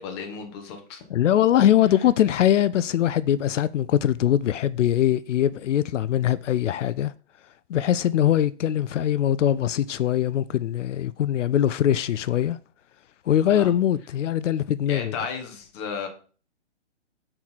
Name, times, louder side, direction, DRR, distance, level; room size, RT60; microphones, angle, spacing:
voice 1, 0.0-1.0 13.5-13.7 14.9-16.1, left 6 dB, 25° left, 1.0 m, -33 dB
voice 2, 1.1-7.1 7.7-12.6 13.3-15.1, left 11 dB, 85° left, 0.5 m, -22 dB
6.2 x 4.4 x 4.1 m
hypercardioid pair, 155°, 36 cm